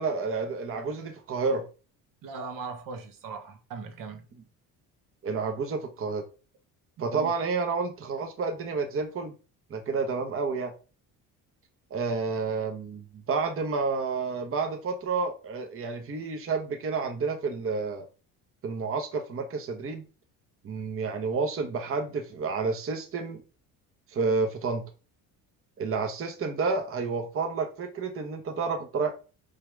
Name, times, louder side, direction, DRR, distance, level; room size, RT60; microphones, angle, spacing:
voice 1, 0.0-1.6 5.2-6.2 7.0-9.3 9.7-10.7 11.9-18.0 18.6-20.0 20.6-23.4 24.1-24.8 25.8-29.1, right 4 dB, 35° right, 1.1 m, -30 dB
voice 2, 2.2-4.3 7.0-7.3, right 4 dB, 60° right, 1.4 m, -39 dB
5.6 x 5.1 x 3.4 m
cardioid pair, 115°, 36 cm